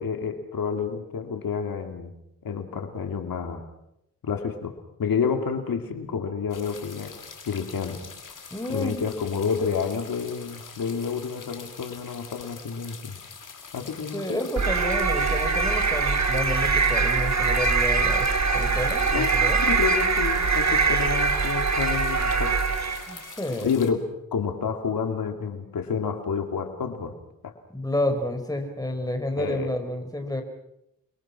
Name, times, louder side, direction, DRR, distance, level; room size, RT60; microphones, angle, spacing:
voice 1, 0.0-2.1 2.4-3.6 4.2-7.1 7.5-8.0 8.7-13.2 13.7-14.4 19.1-19.3 19.6-22.5 23.6-24.0 24.3-27.1 27.4-27.5 29.4-29.7, left 6 dB, 90° left, 5 dB, 2.7 m, -29 dB
sound 1, 6.5-23.9, left 5 dB, 65° left, 3.6 m, -44 dB
voice 2, 8.5-9.0 14.1-19.6 23.1-23.7 27.7-30.4, left 1 dB, 10° left, 5 dB, 5.1 m, -30 dB
sound 2, 14.6-23.1, right 4 dB, 50° right, 2.7 m, -23 dB
29.5 x 23.0 x 6.0 m, 0.79 s
wide cardioid pair, 80°, 34 cm